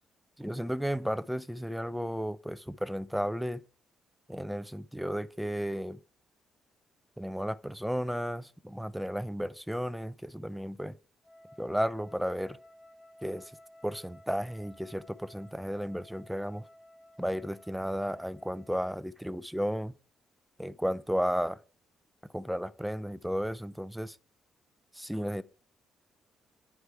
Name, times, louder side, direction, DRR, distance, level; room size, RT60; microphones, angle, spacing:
voice 1, 0.4-3.6 4.3-6.0 7.2-11.0 11.6-12.6 13.2-13.5 13.8-16.6 17.2-19.9 20.6-21.6 22.3-24.2 24.9-25.4, equal, ahead, 0.4 m, -33 dB
Wind instrument woodwind instrument, 11.2-18.9, left 1 dB, 25° left, 4.4 m, -56 dB
9.6 x 4.7 x 3.3 m
cardioid pair, 90°, 0 cm